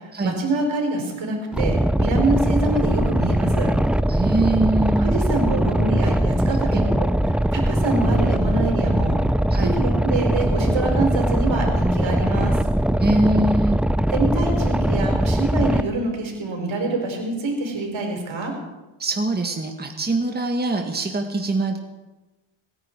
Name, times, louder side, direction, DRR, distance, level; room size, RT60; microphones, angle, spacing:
voice 1, 0.0-3.7 5.0-9.2 9.6-12.6 14.1-18.5, right 2 dB, 70° right, 2 dB, 4.9 m, -25 dB
Boat Water vehicle, 1.5-15.8, right 1 dB, ahead, 0.5 m, -21 dB
voice 2, 4.1-5.1 6.6-6.9 9.5-9.8 13.0-13.8 19.0-21.8, right 2 dB, 20° right, 3 dB, 1.8 m, -23 dB
26.0 x 10.5 x 4.7 m, 1.1 s
cardioid pair, 70°, 48 cm